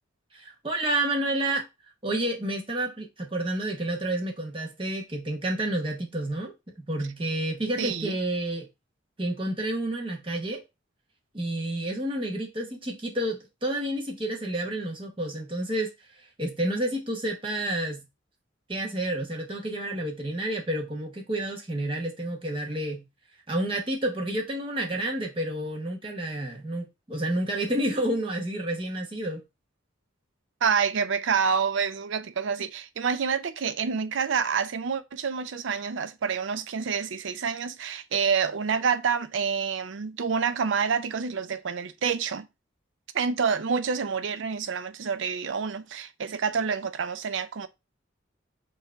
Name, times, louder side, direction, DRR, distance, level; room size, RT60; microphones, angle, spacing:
voice 1, 0.3-1.6 2.0-8.7 9.2-10.6 11.3-15.9 16.2-18.0 18.7-23.0 23.5-29.4, right 1 dB, 25° right, 0.9 m, -30 dB
voice 2, 7.8-8.2 30.6-42.5 43.1-47.7, right 6 dB, 70° right, 0.5 m, -28 dB
4.5 x 2.6 x 4.4 m
head